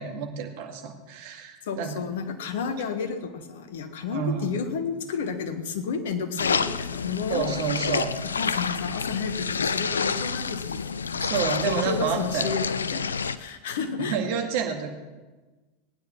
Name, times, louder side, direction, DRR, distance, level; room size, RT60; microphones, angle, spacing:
voice 1, 0.0-1.9 4.1-4.5 7.3-8.1 11.2-12.5 14.1-14.9, right 7 dB, 60° right, 3 dB, 2.1 m, -29 dB
voice 2, 1.6-7.9 8.3-14.2, left 5 dB, 65° left, 8 dB, 1.5 m, -32 dB
sound 1, 6.4-13.4, left 5 dB, 80° left, 0.5 m, -28 dB
19.0 x 9.3 x 6.0 m, 1.2 s
figure-of-eight pair, 85°, 0 cm